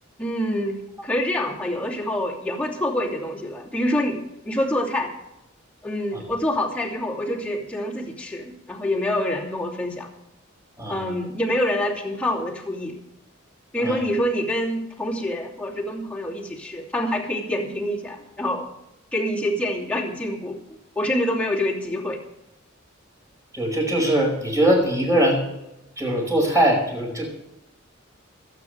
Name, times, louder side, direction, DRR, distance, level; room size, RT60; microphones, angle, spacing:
voice 1, 0.2-5.1 5.8-10.1 10.9-12.9 13.7-18.7 19.1-22.2, left 1 dB, 5° left, -3 dB, 2.9 m, -26 dB
voice 2, 10.8-11.1 13.8-14.0 23.5-25.4 26.0-27.3, right 1 dB, 15° right, 0 dB, 5.4 m, -21 dB
25.5 x 8.9 x 3.3 m, 0.88 s
head